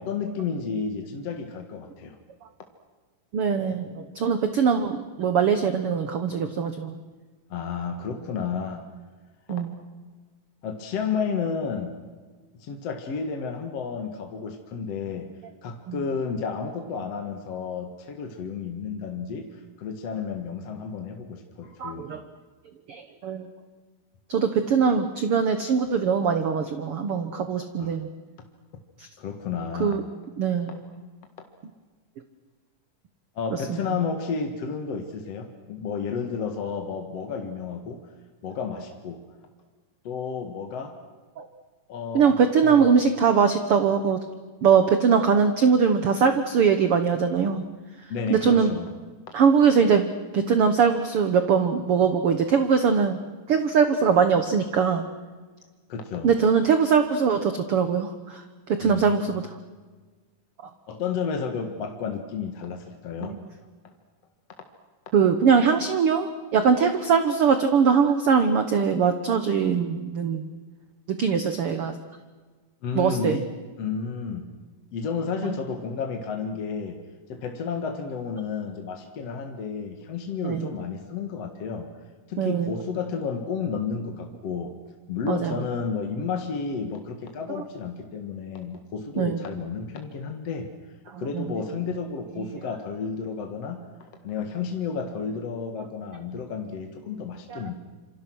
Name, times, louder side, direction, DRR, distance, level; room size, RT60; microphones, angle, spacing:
voice 1, 0.0-2.2 7.5-8.9 9.5-9.6 10.6-12.0 12.6-15.3 15.6-22.2 27.8-28.0 29.2-30.0 30.7-30.8 33.4-38.0 38.4-39.2 40.0-41.0 41.9-42.8 48.1-48.9 55.9-56.4 58.8-59.3 60.9-63.3 72.8-73.5 73.8-74.5 74.9-77.0 77.3-81.9 82.3-84.7 85.1-90.7 91.2-97.7, left 5 dB, 50° left, 4 dB, 2.3 m, -31 dB
voice 2, 3.3-6.9 9.5-9.7 15.9-16.0 21.8-22.2 22.9-23.5 24.3-28.1 29.0-29.1 29.8-30.0 30.4-30.7 33.5-34.0 41.4-41.5 42.1-44.2 44.6-47.6 48.3-48.7 49.3-53.2 53.5-55.1 56.2-59.4 63.2-63.4 65.1-70.5 71.1-72.0 72.9-73.4 75.4-75.5 80.4-80.7 82.4-82.7 85.3-85.6 89.2-89.4 91.1-91.5 92.4-92.6 97.5-97.6, right 6 dB, 70° right, 8 dB, 1.3 m, -22 dB
27.5 x 26.0 x 6.3 m, 1.4 s
omnidirectional pair, 4.3 m